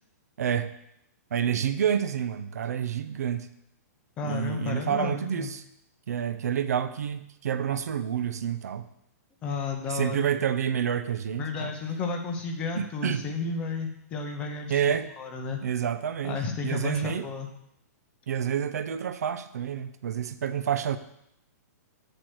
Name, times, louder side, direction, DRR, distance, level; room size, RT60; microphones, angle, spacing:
voice 1, 0.4-0.7 1.3-3.5 4.2-5.6 6.1-8.9 9.9-11.7 12.8-13.2 14.7-15.1 15.6-17.3 18.3-21.0, right 8 dB, 65° right, 11 dB, 0.6 m, -28 dB
voice 2, 4.2-5.5 9.4-10.3 11.4-15.6 16.2-17.5, left 4 dB, 10° left, 4 dB, 0.6 m, -32 dB
8.1 x 4.3 x 6.2 m, 0.79 s
hypercardioid pair, 180°, 9 cm